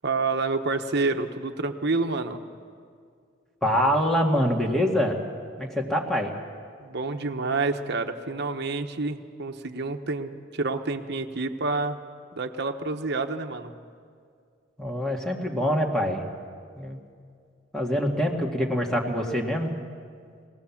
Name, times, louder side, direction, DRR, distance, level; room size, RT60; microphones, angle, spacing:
voice 1, 0.0-2.4 6.8-12.0 12.3-13.7, right 3 dB, 60° right, 6 dB, 1.1 m, -28 dB
voice 2, 3.6-5.3 5.6-6.3 14.8-16.2 16.8-17.0 17.7-19.7, equal, 5° left, 0 dB, 1.9 m, -25 dB
22.0 x 18.0 x 7.2 m, 2.2 s
head